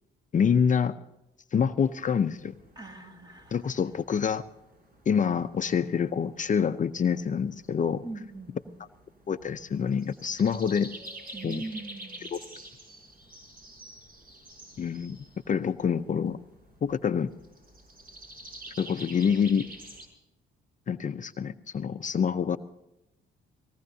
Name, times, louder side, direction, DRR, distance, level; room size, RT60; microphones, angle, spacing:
voice 1, 0.3-0.9 1.5-2.5 3.5-4.4 5.1-8.0 9.3-10.9 11.4-11.6 12.2-12.4 14.8-15.2 15.5-16.4 16.8-17.3 18.8-19.7 20.9-22.6, left 7 dB, 40° left, 9 dB, 0.6 m, -26 dB
sound 1, 1.8-20.1, right 1 dB, 45° right, 5.8 m, -49 dB
voice 2, 2.8-3.6 8.0-8.8 11.3-12.4, right 2 dB, 20° right, 3 dB, 2.2 m, -40 dB
21.0 x 18.5 x 2.8 m, 0.90 s
cardioid pair, 90°, 20 cm